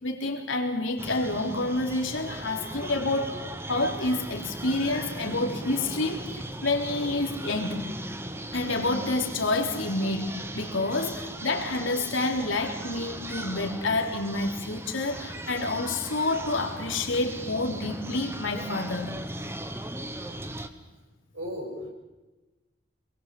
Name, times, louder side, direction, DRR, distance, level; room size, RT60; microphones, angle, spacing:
voice 1, 0.0-3.4 3.7-7.9 8.5-19.1, left 2 dB, 85° left, 2 dB, 3.6 m, -28 dB
sound 1, 1.0-20.7, right 1 dB, 10° right, 1.1 m, -38 dB
voice 2, 21.3-21.9, equal, 90° right, 1 dB, 7.9 m, -36 dB
27.5 x 22.0 x 7.7 m, 1.2 s
head